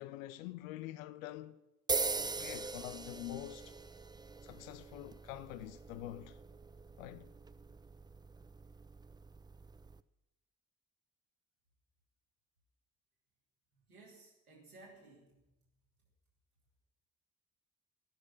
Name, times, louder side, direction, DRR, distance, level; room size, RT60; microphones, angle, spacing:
voice 1, 0.0-1.6 2.1-3.7 4.4-6.4 7.0-7.3, left 14 dB, 70° left, 0.7 m, -46 dB
sound 1, 1.9-10.0, right 4 dB, 10° right, 0.4 m, -42 dB
voice 2, 13.7-15.7, right 2 dB, 90° right, 2.9 m, -58 dB
16.5 x 6.6 x 9.7 m
figure-of-eight pair, 40°, 43 cm